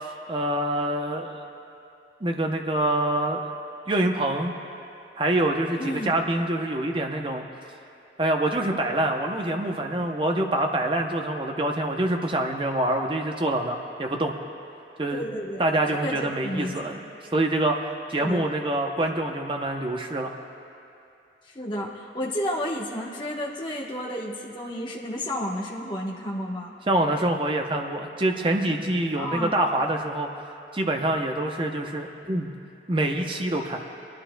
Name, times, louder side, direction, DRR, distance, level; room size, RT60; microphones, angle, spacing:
voice 1, 0.3-1.4 2.2-3.4 3.9-4.5 5.2-7.4 8.2-14.3 15.0-15.2 15.6-17.0 17.3-17.8 18.1-20.3 26.9-30.3 30.7-32.5 32.9-33.8, right 1 dB, 25° right, 3 dB, 0.7 m, -25 dB
voice 2, 5.8-6.1 15.1-16.7 18.2-18.4 21.4-26.7 29.2-29.5, equal, 25° left, -3 dB, 1.1 m, -31 dB
21.0 x 11.5 x 2.2 m, 2.7 s
head